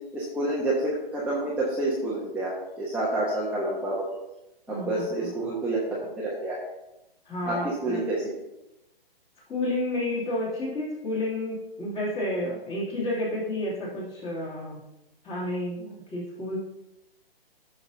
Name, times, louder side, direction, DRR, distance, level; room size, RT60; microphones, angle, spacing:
voice 1, 0.1-4.0 4.7-5.8 6.2-6.6 7.5-8.3, right 2 dB, 5° right, -7 dB, 1.2 m, -28 dB
voice 2, 4.7-5.3 7.3-8.0 9.5-14.8 15.2-16.6, left 1 dB, 15° left, -5 dB, 2.9 m, -31 dB
14.5 x 6.5 x 2.8 m, 0.91 s
figure-of-eight pair, 135°, 30 cm